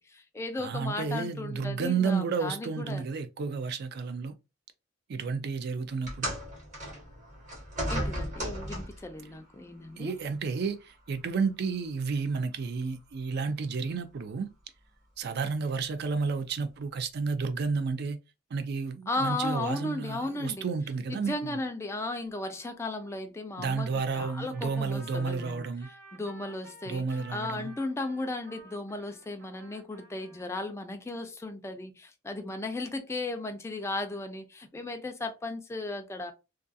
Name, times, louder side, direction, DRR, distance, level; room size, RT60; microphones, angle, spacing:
voice 1, 0.0-3.0 7.9-10.1 19.1-20.7 21.1-25.7 26.1-36.3, left 2 dB, 15° left, 0.3 m, -35 dB
voice 2, 0.6-4.4 5.1-6.3 10.0-14.5 15.2-18.2 18.5-21.6 23.6-25.9 26.8-27.7, right 5 dB, 55° right, 0.4 m, -31 dB
sound 1, 6.0-9.1 10.1-10.3 11.1-11.2, equal, 40° right, 1.1 m, -35 dB
Trumpet, 23.6-30.7, right 1 dB, 80° right, 0.9 m, -53 dB
2.4 x 2.3 x 2.5 m
head